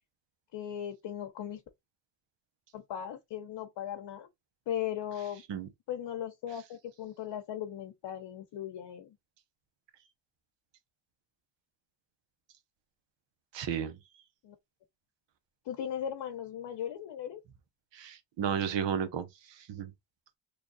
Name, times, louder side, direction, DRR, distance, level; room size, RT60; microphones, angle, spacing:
voice 1, 0.5-1.6 2.7-4.3 4.7-5.4 5.9-9.2 14.4-14.6 15.6-17.4, left 10 dB, 75° left, 0.8 m, -38 dB
voice 2, 13.5-14.0 17.9-19.3 19.6-19.9, right 8 dB, 85° right, 0.9 m, -33 dB
3.1 x 2.4 x 3.9 m
cardioid pair, 65°, 42 cm